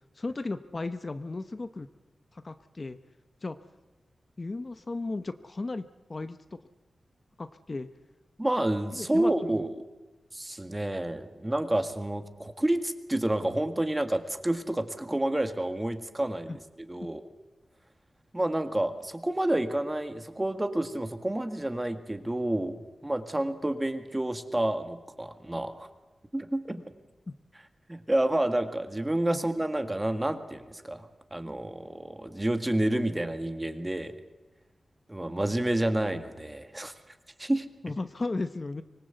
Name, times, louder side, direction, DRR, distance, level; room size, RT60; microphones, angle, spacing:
voice 1, 0.2-1.9 2.3-3.0 3.4-3.6 4.4-5.8 6.1-6.6 7.4-7.9 8.9-9.7 16.5-16.6 27.3-27.4 29.3-29.4 37.8-38.8, left 3 dB, 35° left, 10 dB, 0.8 m, -35 dB
voice 2, 8.4-9.7 10.3-16.5 16.8-17.2 18.3-25.9 26.3-26.8 27.9-34.1 35.1-36.9 37.4-37.7, right 1 dB, 15° right, 8 dB, 1.8 m, -29 dB
25.0 x 20.0 x 8.1 m, 1.1 s
wide cardioid pair, 105°, 0 cm